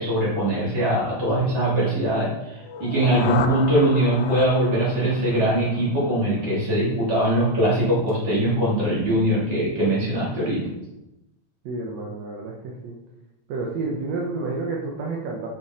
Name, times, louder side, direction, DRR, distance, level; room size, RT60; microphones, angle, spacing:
voice 1, 0.0-10.6, right 1 dB, 35° right, -7 dB, 4.0 m, -22 dB
sound 1, 2.6-6.6, left 8 dB, 90° left, 2.0 m, -32 dB
voice 2, 11.6-13.0 13.5-15.5, right 3 dB, 70° right, -1 dB, 2.1 m, -30 dB
7.0 x 6.4 x 5.0 m, 0.93 s
omnidirectional pair, 3.3 m